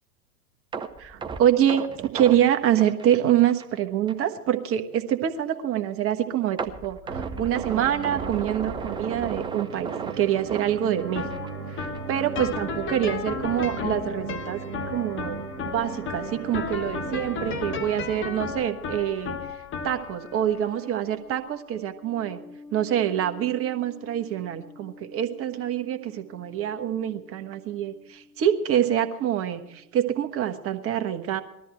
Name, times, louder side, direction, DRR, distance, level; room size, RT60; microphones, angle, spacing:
sound 1, 0.7-3.8 4.1-4.2 4.7-4.8 6.6-11.5 11.8-12.0 12.4-12.5, right 5 dB, 10° right, 0.7 m, -35 dB
voice 1, 1.0-11.2 11.7-14.6 14.9-19.4 19.8-22.4 22.7-31.4, right 10 dB, 30° right, 7 dB, 1.4 m, -26 dB
sound 2, 7.1-19.0, right 6 dB, 85° right, 1.3 m, -37 dB
sound 3, 11.0-28.2, left 6 dB, 25° left, 1.5 m, -36 dB
19.5 x 13.5 x 4.5 m, 0.82 s
figure-of-eight pair, 100°, 44 cm